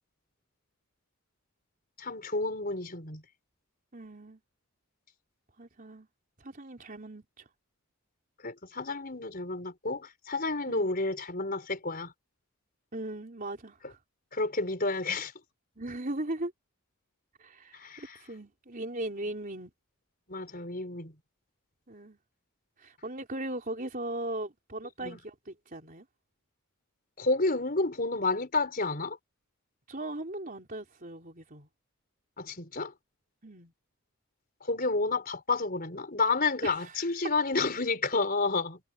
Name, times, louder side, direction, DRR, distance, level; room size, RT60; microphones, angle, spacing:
voice 1, 2.0-3.2 8.4-12.1 14.3-15.3 17.7-18.2 20.3-21.1 25.0-25.2 27.2-29.2 32.4-32.9 34.6-38.8, left 3 dB, 40° left, 4.8 m, -30 dB
voice 2, 3.9-4.4 5.6-6.1 6.4-7.5 10.7-10.9 12.9-14.0 15.8-16.5 17.4-19.7 21.9-22.2 22.8-26.1 29.9-31.7 33.4-33.7 36.6-37.0, right 1 dB, 40° right, 3.9 m, -38 dB
head